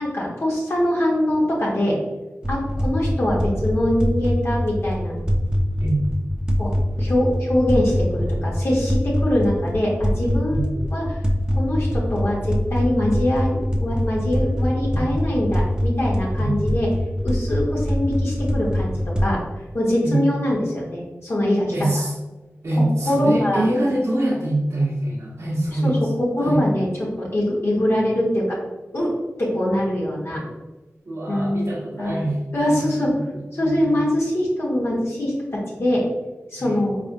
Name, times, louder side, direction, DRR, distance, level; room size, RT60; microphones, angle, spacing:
voice 1, 0.0-2.0 2.5-5.2 6.6-6.7 7.0-11.2 11.5-16.9 17.2-19.4 19.7-21.7 22.8-23.6 25.7-25.9 26.3-28.6 28.9-29.1 29.4-30.4 31.3-31.7 32.0-32.2 32.5-33.1 33.5-36.0 36.5-37.0, left 1 dB, 60° left, -5 dB, 1.2 m, -23 dB
sound 1, 2.4-19.2, equal, 15° right, 0.7 m, -24 dB
voice 2, 21.7-22.1 22.6-26.6 31.0-32.3 32.6-33.2 33.6-34.0 36.6-36.7, right 1 dB, 65° right, -7 dB, 1.1 m, -24 dB
4.0 x 3.4 x 2.6 m, 1.1 s
cardioid pair, 45°, 5 cm